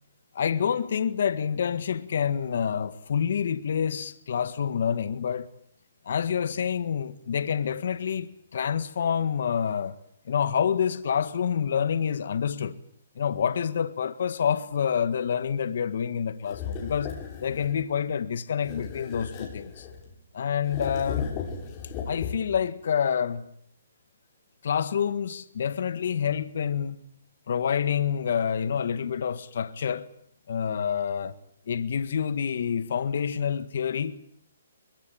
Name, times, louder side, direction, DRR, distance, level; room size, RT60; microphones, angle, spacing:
voice 1, 0.4-5.5 6.1-10.0 10.3-12.8 13.2-17.1 17.4-19.9 20.3-21.4 22.1-23.5 24.6-27.0 27.5-30.1 30.5-31.4 31.7-34.2, left 7 dB, 60° left, 1.8 m, -27 dB
sound 1, 16.5-17.8 18.6-20.1 20.6-22.6, left 6 dB, 25° left, 7.6 m, -36 dB
23.5 x 21.5 x 8.8 m
hypercardioid pair, 150°, 0 cm